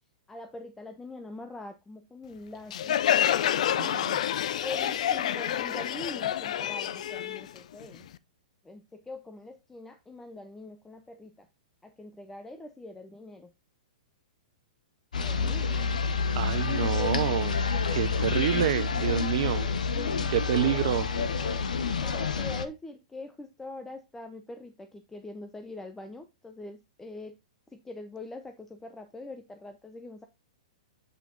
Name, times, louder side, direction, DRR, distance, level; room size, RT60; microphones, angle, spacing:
voice 1, 0.3-3.0 3.7-4.0 4.6-8.1 8.6-11.5 11.8-13.5 15.2-16.0 19.9-20.8 22.0-27.4 27.7-30.2, left 2 dB, 10° left, 0.7 m, -43 dB
Crowd, 2.7-8.1, left 10 dB, 65° left, 0.5 m, -28 dB
voice 2, 3.8-4.2 16.3-17.6 17.9-19.7 20.3-21.1, right 12 dB, 60° right, 0.6 m, -28 dB
sound 1, 15.1-22.7, left 5 dB, 85° left, 0.9 m, -28 dB
8.1 x 4.5 x 3.9 m
hypercardioid pair, 130°, 4 cm